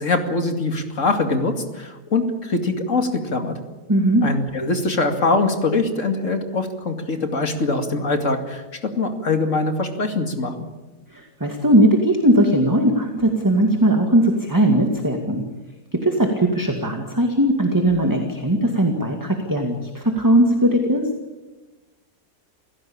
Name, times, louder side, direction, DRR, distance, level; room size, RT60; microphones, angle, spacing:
voice 1, 0.0-3.6 4.2-10.7, left 3 dB, 55° left, 5 dB, 2.8 m, -23 dB
voice 2, 3.9-4.2 11.1-15.4 15.9-21.1, right 1 dB, 10° right, 3 dB, 2.2 m, -19 dB
29.0 x 16.0 x 8.8 m, 1.2 s
omnidirectional pair, 1.6 m